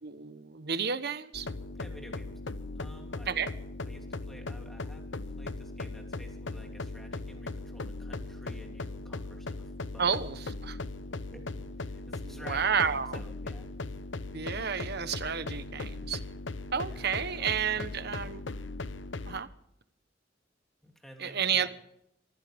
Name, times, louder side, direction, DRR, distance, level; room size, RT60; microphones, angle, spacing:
voice 1, 0.0-1.5 3.3-3.5 10.0-10.8 12.2-13.2 14.3-16.2 16.7-18.4 19.3-19.5 21.2-21.7, right 7 dB, 60° right, 1.2 m, -31 dB
sound 1, 1.3-19.4, left 3 dB, 75° left, 0.9 m, -39 dB
voice 2, 1.7-2.4 2.7-3.3 3.8-10.1 11.1-13.9 16.9-17.4 17.7-18.2 20.8-21.7, equal, ahead, 3.3 m, -52 dB
24.0 x 15.5 x 3.6 m
head